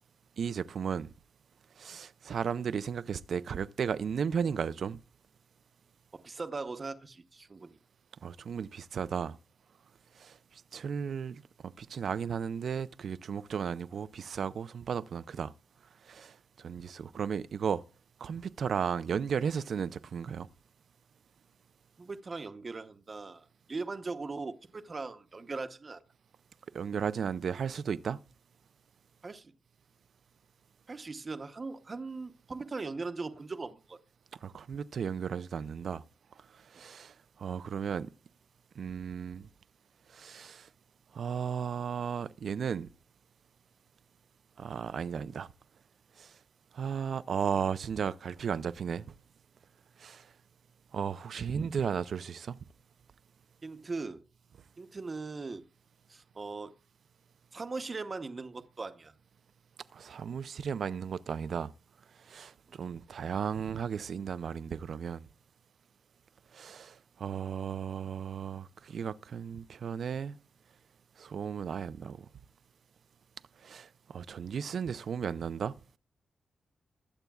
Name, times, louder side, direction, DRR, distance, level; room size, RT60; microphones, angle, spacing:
voice 1, 0.4-1.1 1.8-5.0 8.2-9.4 10.2-10.4 10.7-11.4 11.8-15.5 16.0-17.8 18.2-20.5 26.7-28.2 34.4-36.0 36.7-38.1 38.8-39.5 40.1-40.7 41.1-42.9 44.6-45.5 46.2-46.3 46.7-49.0 50.0-50.3 50.9-52.6 59.9-61.7 62.3-65.3 66.5-70.4 71.2-72.3 73.6-75.8, right 7 dB, 55° right, 0.4 m, -35 dB
voice 2, 6.2-7.8 22.0-26.0 29.2-29.5 30.9-34.0 53.6-54.2 54.8-55.6 56.1-56.7 57.5-59.1, right 3 dB, 30° right, 0.8 m, -39 dB
22.0 x 8.2 x 2.3 m
wide cardioid pair, 155°, 0 cm